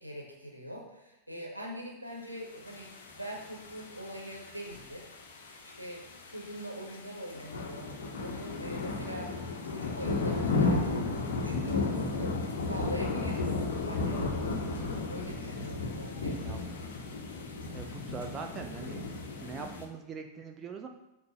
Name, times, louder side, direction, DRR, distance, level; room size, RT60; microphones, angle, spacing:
voice 1, 0.0-2.9 3.1-7.9 8.2-9.3 9.6-11.0 11.4-13.6 13.9-14.7 15.1-16.6, equal, 90° right, -1 dB, 1.5 m, -42 dB
sound 1, 2.7-19.8, left 3 dB, 60° left, 1.1 m, -34 dB
voice 2, 17.7-19.0 19.4-20.9, right 5 dB, 25° right, 4 dB, 0.7 m, -42 dB
8.0 x 3.3 x 5.6 m, 0.92 s
figure-of-eight pair, 90°, 0 cm